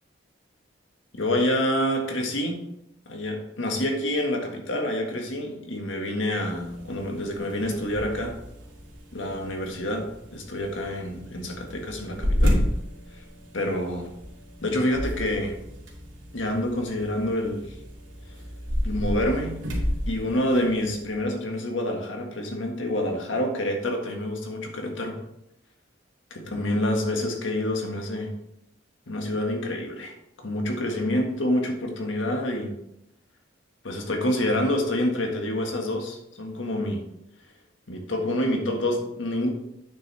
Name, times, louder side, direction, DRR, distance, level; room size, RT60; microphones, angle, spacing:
voice 1, 1.1-2.6 3.0-8.4 9.1-12.6 13.5-14.1 14.6-15.5 16.3-17.7 18.8-19.6 20.1-25.2 26.3-28.3 29.1-32.8 33.8-37.0 37.9-39.5, left 1 dB, 80° left, 2 dB, 1.7 m, -27 dB
sound 1, 6.5-21.2, equal, 80° right, 2.6 m, -32 dB
9.0 x 7.0 x 3.3 m, 0.81 s
head